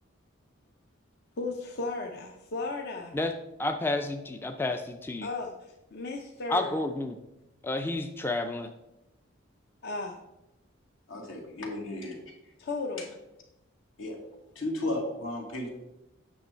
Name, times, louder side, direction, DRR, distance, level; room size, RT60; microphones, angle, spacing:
voice 1, 1.4-3.2 5.2-6.8 9.8-10.2 12.6-13.2, left 3 dB, 55° left, 0.7 m, -35 dB
voice 2, 3.6-5.3 6.5-7.1 7.6-8.7, left 2 dB, 10° left, 0.4 m, -30 dB
voice 3, 11.1-12.2 14.0-14.2 14.6-15.7, left 1 dB, 75° left, 2.0 m, -34 dB
8.5 x 6.2 x 4.4 m
head